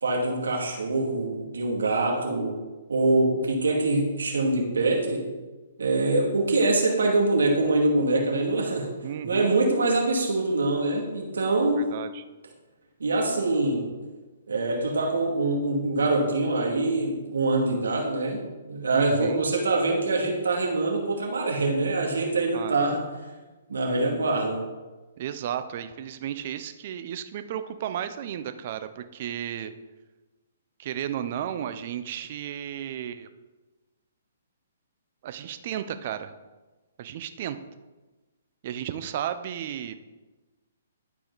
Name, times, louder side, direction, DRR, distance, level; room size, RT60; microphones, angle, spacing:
voice 1, 0.0-2.6 2.9-5.2 5.8-8.9 9.2-11.9 13.0-13.8 14.5-18.4 18.7-23.0 23.7-24.6, right 2 dB, 85° right, 0 dB, 2.3 m, -24 dB
voice 2, 9.0-9.5 11.8-12.2 18.9-19.4 22.5-22.7 25.2-29.7 30.8-33.3 35.2-36.3 37.0-37.6 38.6-40.0, right 10 dB, 45° right, 10 dB, 0.6 m, -33 dB
12.0 x 4.9 x 4.1 m, 1.2 s
hypercardioid pair, 145°, 0 cm